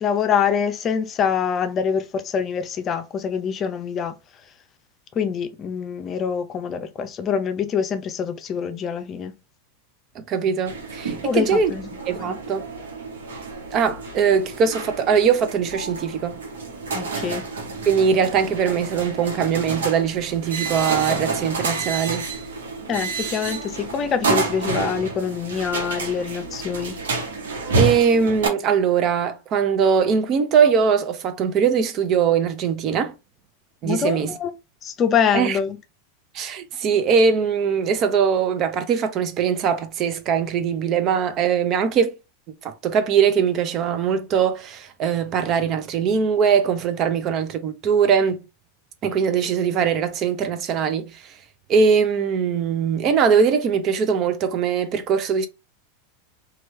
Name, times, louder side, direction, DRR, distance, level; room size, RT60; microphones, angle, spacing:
voice 1, 0.0-4.1 5.2-9.3 11.2-11.9 12.2-12.3 16.9-17.5 22.9-27.0 33.8-34.5 34.8-35.8, left 7 dB, 35° left, 0.5 m, -25 dB
voice 2, 10.2-11.7 12.1-12.6 13.7-16.4 17.9-22.3 27.8-33.1 33.8-34.3 35.3-35.6 36.3-42.1 42.6-48.4 49.0-51.3 51.7-55.5, right 6 dB, 40° right, 0.5 m, -21 dB
sound 1, 10.7-28.5, right 3 dB, 85° right, 1.0 m, -29 dB
3.0 x 2.3 x 3.1 m
hypercardioid pair, 105°, 0 cm